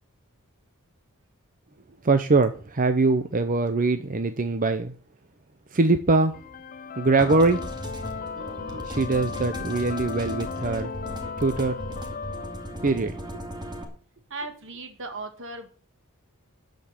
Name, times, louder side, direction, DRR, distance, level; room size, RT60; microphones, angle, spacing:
voice 1, 2.0-4.9 5.7-6.4 7.0-7.7 8.8-10.9 11.4-11.8 12.8-13.2, right 3 dB, 40° right, 8 dB, 0.8 m, -22 dB
sound 1, 6.3-13.3, left 6 dB, 40° left, 0.5 m, -36 dB
sound 2, 7.2-13.8, right 1 dB, 20° right, 2.3 m, -37 dB
voice 2, 14.3-15.7, right 2 dB, 60° right, 7 dB, 2.1 m, -37 dB
13.0 x 5.3 x 8.8 m, 0.42 s
head